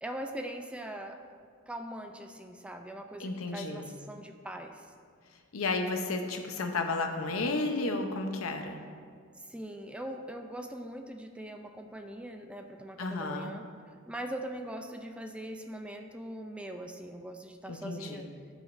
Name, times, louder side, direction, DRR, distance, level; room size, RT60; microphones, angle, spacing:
voice 1, 0.0-1.2 1.7-4.9 9.4-13.7 14.1-18.3, right 1 dB, 5° right, 5 dB, 0.3 m, -41 dB
voice 2, 3.2-3.9 5.5-8.8 13.0-13.5 17.7-18.3, left 3 dB, 80° left, 4 dB, 0.8 m, -32 dB
14.0 x 5.0 x 2.6 m, 2.1 s
head